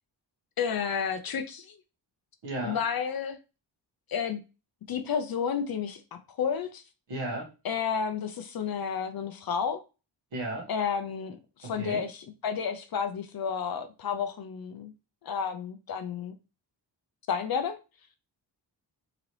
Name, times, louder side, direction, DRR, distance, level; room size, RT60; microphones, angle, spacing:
voice 1, 0.6-1.8 2.6-3.4 4.1-4.4 4.9-6.8 7.6-9.8 10.7-14.9 15.2-16.3 17.3-17.8, left 7 dB, 55° left, 0.5 m, -31 dB
voice 2, 2.4-2.8 7.1-7.5 10.3-10.7 11.6-12.1, right 2 dB, 80° right, 1.7 m, -34 dB
3.9 x 2.9 x 3.0 m
wide cardioid pair, 110°, 44 cm